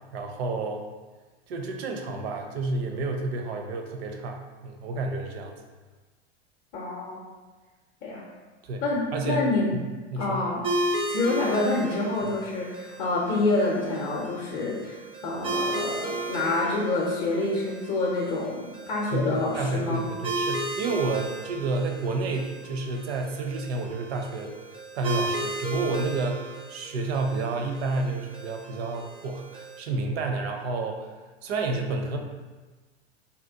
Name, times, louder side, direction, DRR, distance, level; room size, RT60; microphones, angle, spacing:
voice 1, 0.1-0.8 1.5-5.6 8.6-8.8 9.1-9.4 10.1-10.4 19.1-24.5 24.9-31.1 31.4-32.2, right 3 dB, 70° right, 3 dB, 0.5 m, -30 dB
voice 2, 6.7-7.2 8.0-8.2 8.8-9.7 10.2-10.6 11.1-20.1, left 2 dB, 40° left, -3 dB, 0.5 m, -27 dB
sound 1, 10.6-29.8, right 2 dB, 20° right, 0.4 m, -35 dB
2.7 x 2.0 x 2.7 m, 1.3 s
hypercardioid pair, 95°, 33 cm